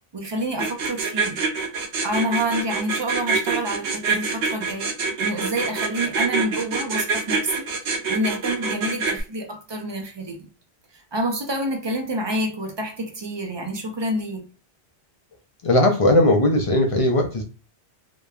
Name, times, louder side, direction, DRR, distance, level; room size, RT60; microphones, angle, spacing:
voice 1, 0.1-1.4 2.0-4.9 5.2-7.7 8.1-10.5 10.9-14.5, right 1 dB, 45° right, 0.3 m, -28 dB
sound 1, 0.6-9.2, right 4 dB, 90° right, 0.9 m, -25 dB
voice 2, 15.6-17.4, left 1 dB, 55° left, 0.4 m, -18 dB
2.9 x 2.1 x 2.2 m
omnidirectional pair, 1.1 m